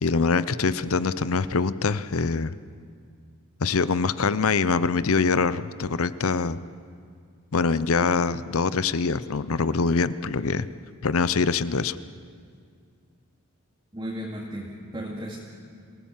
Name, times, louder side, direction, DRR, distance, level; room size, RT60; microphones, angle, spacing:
voice 1, 0.0-2.6 3.6-6.6 7.5-10.7 11.0-12.0, left 4 dB, 75° left, 15 dB, 0.7 m, -24 dB
voice 2, 13.9-15.4, equal, 20° right, -5 dB, 2.4 m, -34 dB
27.0 x 17.5 x 7.3 m, 2.2 s
head